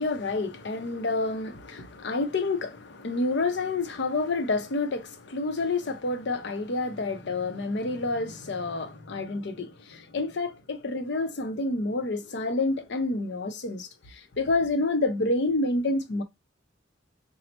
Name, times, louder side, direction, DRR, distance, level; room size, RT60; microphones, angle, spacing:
voice 1, 0.0-16.2, left 2 dB, 65° left, 0.6 m, -29 dB
4.1 x 2.0 x 2.8 m
head